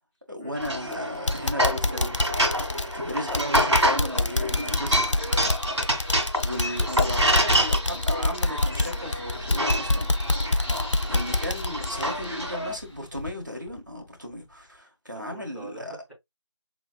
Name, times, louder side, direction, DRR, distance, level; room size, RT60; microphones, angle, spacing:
voice 1, 0.3-2.2 2.9-5.2 6.4-10.1 11.1-15.9, left 1 dB, 40° right, 1.4 m, -35 dB
sound 1, 0.6-0.9 1.3-12.8 13.2-13.3 13.8-13.9, left 2 dB, 75° left, 0.5 m, -27 dB
sound 2, 0.6-12.7, equal, 65° right, 1.9 m, -27 dB
Speech / Whispering, 3.4-13.2, equal, 55° left, 2.8 m, -43 dB
voice 2, 3.4-3.8 15.1-16.1, right 2 dB, 30° left, 2.9 m, -43 dB
5.0 x 3.9 x 2.3 m
figure-of-eight pair, 180°, 16 cm